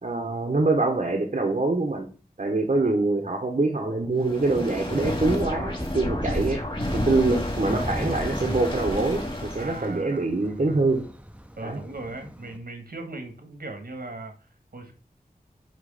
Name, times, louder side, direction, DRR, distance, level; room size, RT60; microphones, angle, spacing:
voice 1, 0.0-2.1 2.4-6.6 6.9-11.0 11.6-11.8, right 3 dB, 55° right, 2 dB, 1.3 m, -24 dB
voice 2, 2.7-3.1 9.6-10.8 11.6-14.9, right 2 dB, 75° right, 5 dB, 1.9 m, -39 dB
sound 1, 4.2-10.0, left 1 dB, 35° left, 2.3 m, -30 dB
Thunder / Rain, 7.6-12.6, equal, 10° right, 0.9 m, -40 dB
9.8 x 3.3 x 5.0 m, 0.37 s
wide cardioid pair, 60°, 16 cm